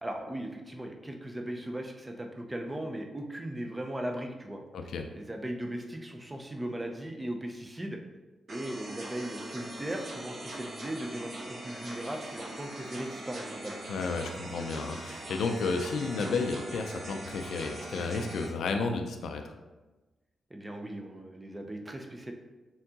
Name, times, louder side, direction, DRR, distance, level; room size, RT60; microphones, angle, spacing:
voice 1, 0.0-4.6 5.3-8.0 8.5-13.8 20.5-22.3, right 1 dB, 10° right, 3 dB, 0.4 m, -38 dB
voice 2, 4.7-5.1 13.9-19.5, left 4 dB, 80° left, 5 dB, 0.4 m, -32 dB
sound 1, 8.5-18.5, right 1 dB, 50° right, 1.0 m, -42 dB
4.4 x 3.7 x 2.8 m, 1.2 s
wide cardioid pair, 160°, 0 cm